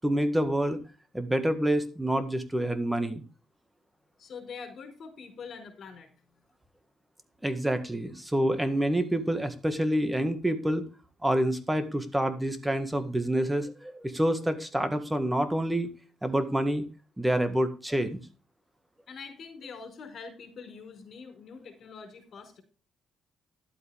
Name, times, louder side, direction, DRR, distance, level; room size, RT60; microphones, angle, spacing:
voice 1, 0.0-0.8 1.1-3.2 7.4-10.9 11.2-15.9 16.2-16.8 17.2-18.2, right 1 dB, 10° right, 10 dB, 1.8 m, -27 dB
voice 2, 4.2-6.1 19.1-22.6, left 5 dB, 55° left, 6 dB, 4.6 m, -44 dB
12.0 x 8.1 x 3.6 m, 0.34 s
cardioid pair, 90°, 0 cm